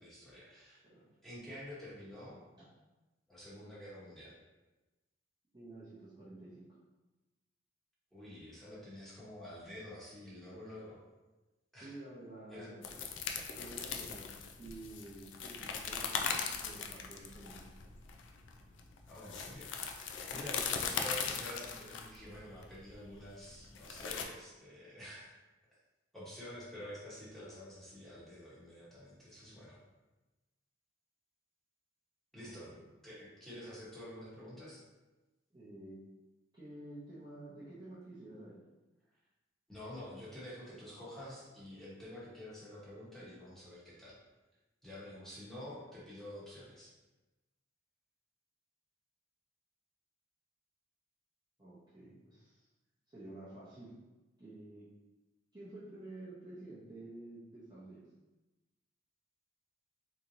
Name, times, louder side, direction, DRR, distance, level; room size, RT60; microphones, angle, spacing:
voice 1, 0.0-0.8 1.2-2.4 3.3-4.3 8.1-11.0 11.7-12.0 12.5-12.7 19.1-25.4 26.1-29.8 32.3-32.7 33.0-34.8 39.7-44.2 44.8-46.9, left 1 dB, ahead, -9 dB, 1.1 m, -48 dB
voice 2, 5.5-6.7 11.8-14.3 14.6-17.6 32.4-32.8 35.5-36.0 36.5-38.6 51.6-52.7 53.1-53.9 54.4-54.9 55.5-58.1, right 2 dB, 20° right, -10 dB, 0.7 m, -50 dB
sound 1, 12.8-24.2, left 6 dB, 70° left, 0.4 m, -39 dB
3.5 x 3.0 x 2.6 m, 1.1 s
head